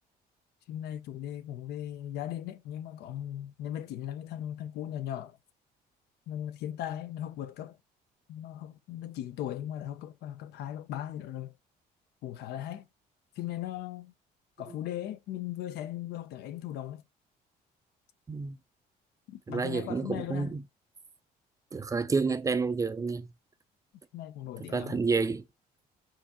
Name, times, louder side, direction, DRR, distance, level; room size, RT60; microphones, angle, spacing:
voice 1, 0.7-5.4 6.3-7.8 8.3-11.5 12.2-12.9 13.4-14.1 14.6-17.0 19.3-20.6 24.1-25.0, left 11 dB, 75° left, 0.5 m, -38 dB
voice 2, 19.5-20.6 21.7-23.3 24.7-25.4, right 4 dB, 20° right, 0.4 m, -29 dB
4.7 x 2.6 x 4.1 m
cardioid pair, 110°, 17 cm